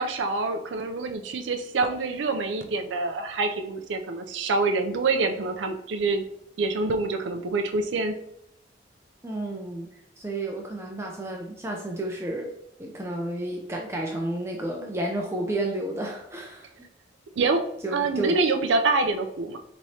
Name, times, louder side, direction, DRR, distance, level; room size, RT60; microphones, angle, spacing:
voice 1, 0.0-6.2 6.6-8.1 17.4-17.6 17.9-19.6, right 3 dB, 85° right, 5 dB, 0.4 m, -26 dB
voice 2, 9.2-9.9 10.2-12.5 12.8-16.7 17.8-18.4, right 1 dB, 15° right, 0 dB, 0.4 m, -31 dB
4.7 x 3.0 x 2.7 m, 0.77 s
head